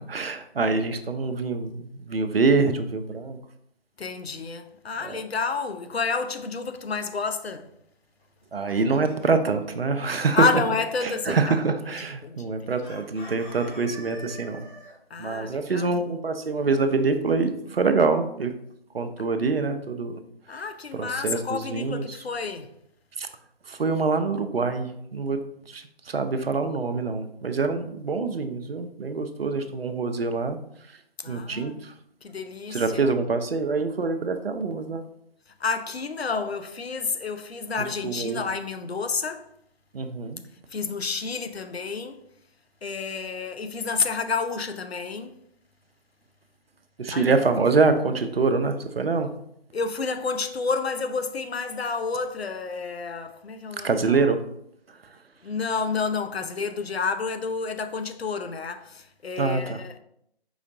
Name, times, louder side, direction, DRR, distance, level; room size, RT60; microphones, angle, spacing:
voice 1, 0.0-3.4 5.0-5.2 8.5-10.5 11.0-14.7 15.2-18.5 18.9-20.2 20.5-20.6 20.9-22.2 23.2-23.3 23.7-30.6 30.9-31.0 31.3-31.9 32.7-35.0 38.0-38.4 39.9-40.4 47.0-49.4 53.8-54.4 54.9-55.2 59.4-59.8, right 4 dB, 70° right, 0.6 m, -25 dB
voice 2, 4.0-7.7 10.3-11.4 12.2-12.5 15.1-15.9 20.5-22.7 31.2-31.8 32.2-33.1 35.6-39.5 40.7-42.2 42.8-45.3 47.1-47.3 49.7-54.2 55.4-60.0, left 4 dB, 75° left, 0.7 m, -30 dB
Chicken rooster, 8.2-9.4 12.8-14.9, equal, 55° left, 1.8 m, -44 dB
5.0 x 3.8 x 2.6 m
figure-of-eight pair, 150°, 31 cm